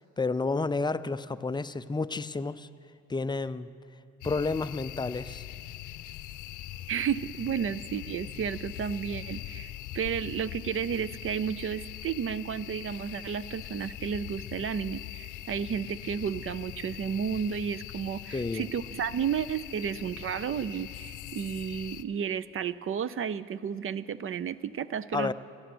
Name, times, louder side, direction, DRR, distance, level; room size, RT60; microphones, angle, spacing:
voice 1, 0.2-2.7 3.1-3.7 4.2-5.4 18.3-18.7 25.1-25.3, left 3 dB, 15° left, 13 dB, 0.4 m, -30 dB
sound 1, 4.2-22.0, left 13 dB, 85° left, 0.6 m, -42 dB
voice 2, 6.9-25.3, right 7 dB, 45° right, 17 dB, 0.5 m, -32 dB
17.0 x 12.0 x 6.1 m, 2.9 s
cardioid pair, 90°, 30 cm